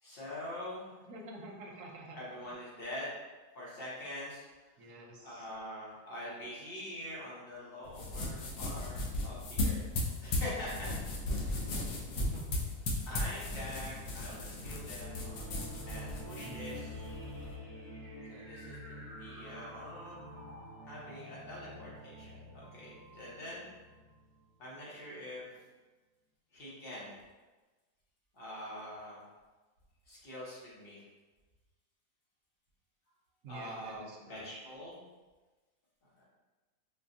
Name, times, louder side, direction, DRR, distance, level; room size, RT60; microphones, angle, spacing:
voice 1, 0.0-1.0 2.1-3.1 3.5-4.4 4.8-4.9 5.2-9.8 10.2-10.9 11.3-11.6 13.0-15.4 15.8-17.0 18.3-20.2 20.8-23.7 24.6-25.6 26.5-27.1 28.3-29.2 30.1-31.0 33.5-35.1 36.2-36.3, left 1 dB, 40° left, -7 dB, 1.0 m, -44 dB
voice 2, 1.1-2.2 4.8-5.4 12.2-12.6 16.4-16.9 33.4-34.5, right 2 dB, 65° right, -2 dB, 0.8 m, -48 dB
sound 1, 7.9-17.5, left 2 dB, 65° left, 0.9 m, -36 dB
sound 2, 14.3-24.5, equal, 30° right, 0.8 m, -47 dB
4.2 x 2.3 x 2.6 m, 1.2 s
omnidirectional pair, 1.8 m